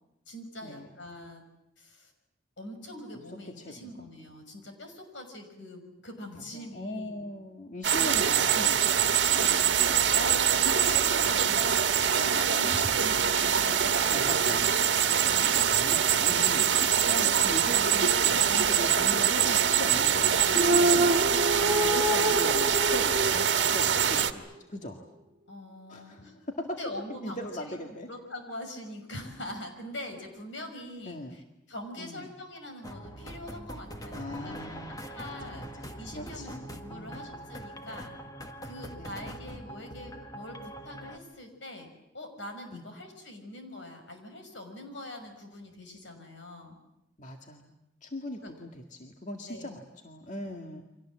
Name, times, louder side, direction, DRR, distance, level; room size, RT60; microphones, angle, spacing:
voice 1, 0.3-1.4 1.8-2.1 2.6-7.3 9.2-14.4 17.0-17.3 21.5-21.8 25.5-26.4 26.6-27.7 28.1-31.4 31.7-34.5 35.1-38.2 38.6-41.9 42.1-46.8 48.4-48.5 49.5-49.7, left 1 dB, 75° left, 5 dB, 6.1 m, -43 dB
voice 2, 3.3-3.9 6.4-9.8 13.6-14.8 15.3-21.1 21.5-25.0 25.9-26.8 27.2-28.1 31.1-31.4 32.0-32.3 34.1-35.0 35.4-37.3 39.0-39.4 42.7-42.8 47.2-50.8, left 1 dB, 40° left, 2 dB, 2.0 m, -40 dB
sound 1, 7.8-24.3, right 8 dB, 65° right, 1.5 m, -24 dB
sound 2, 20.5-24.0, right 1 dB, 30° right, 2.3 m, -26 dB
sound 3, 32.8-41.2, equal, 20° left, 1.8 m, -43 dB
29.5 x 24.5 x 7.6 m, 0.86 s
head